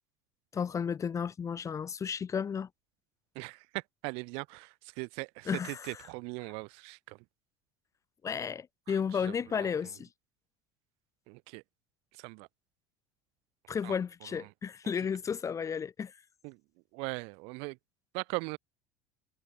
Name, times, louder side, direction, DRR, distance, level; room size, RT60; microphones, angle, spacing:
voice 1, 0.5-2.7 5.5-5.9 8.2-10.1 13.7-16.1, left 7 dB, 30° left, 1.5 m, -33 dB
voice 2, 3.3-7.2 8.9-9.7 11.3-11.6 12.1-12.5 13.8-14.0 14.3-14.5 14.8-14.9 16.4-16.6 16.9-17.8 18.1-18.6, right 33 dB, 70° right, 3.8 m, -40 dB
supercardioid pair, 90°, 10 cm